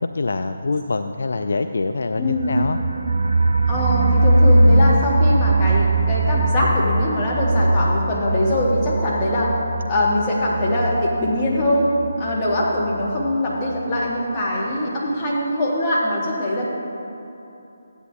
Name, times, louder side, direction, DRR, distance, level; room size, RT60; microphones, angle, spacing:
voice 1, 0.0-2.8, left 3 dB, 65° left, 8 dB, 0.4 m, -24 dB
voice 2, 2.2-2.5 3.7-9.5 9.9-11.9 12.2-16.7, left 1 dB, 20° left, -7 dB, 2.4 m, -22 dB
sound 1, 2.3-13.0 13.3-13.4 13.7-13.8, right 2 dB, 60° right, 0.5 m, -20 dB
14.0 x 10.0 x 3.6 m, 2.9 s
figure-of-eight pair, 150°, 0 cm